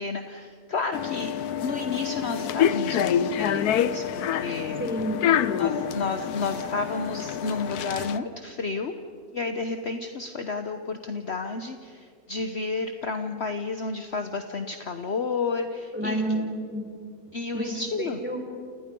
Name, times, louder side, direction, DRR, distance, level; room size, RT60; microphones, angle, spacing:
voice 1, 0.0-1.3 1.6-4.8 5.6-8.9 9.3-16.2 17.3-18.2, left 4 dB, 50° left, 7 dB, 1.2 m, -31 dB
sound 1, 0.9-8.2, left 9 dB, 85° left, 1.3 m, -27 dB
voice 2, 4.8-5.7 15.9-16.9 17.5-18.5, right 1 dB, 5° right, 1 dB, 4.4 m, -30 dB
29.5 x 29.0 x 5.4 m, 2.4 s
omnidirectional pair, 1.6 m